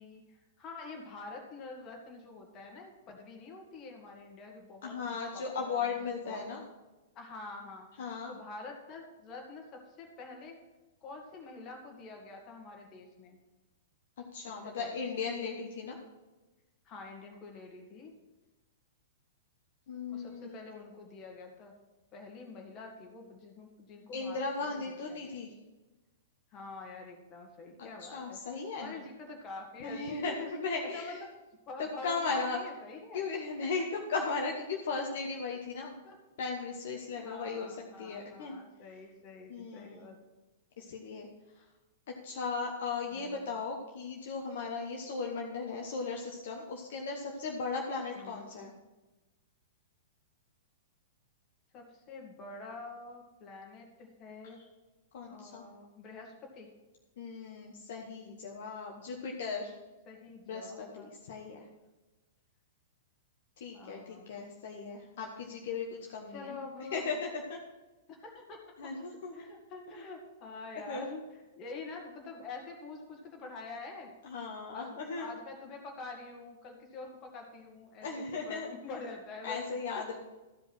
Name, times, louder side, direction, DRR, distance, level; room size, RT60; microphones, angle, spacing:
voice 1, 0.0-5.8 6.2-6.4 7.1-7.9 8.3-10.6 11.0-13.4 14.6-14.9 16.8-18.1 20.1-21.7 22.1-25.4 26.5-28.4 28.7-30.5 30.9-31.3 31.7-33.3 35.8-36.2 37.2-40.2 43.1-43.6 48.1-48.5 51.7-54.6 55.3-56.7 60.1-61.1 63.7-64.3 66.3-67.1 68.1-68.6 69.3-74.1 74.7-79.6 80.0-80.1, left 3 dB, 30° left, 1 dB, 2.2 m, -46 dB
voice 2, 4.8-6.6 8.0-8.3 14.3-16.0 19.9-20.5 24.1-25.5 27.8-28.9 29.8-31.2 32.0-32.6 33.1-35.9 36.4-38.6 39.5-40.0 40.8-41.3 42.2-48.7 55.1-55.7 57.2-59.7 60.5-61.6 63.6-66.6 66.9-67.6 68.8-69.5 69.9-70.0 70.9-71.1 74.2-75.3 78.0-78.7 79.4-80.2, left 4 dB, 55° left, 0 dB, 1.1 m, -37 dB
13.5 x 5.3 x 6.2 m, 1.1 s
figure-of-eight pair, 105°, 0 cm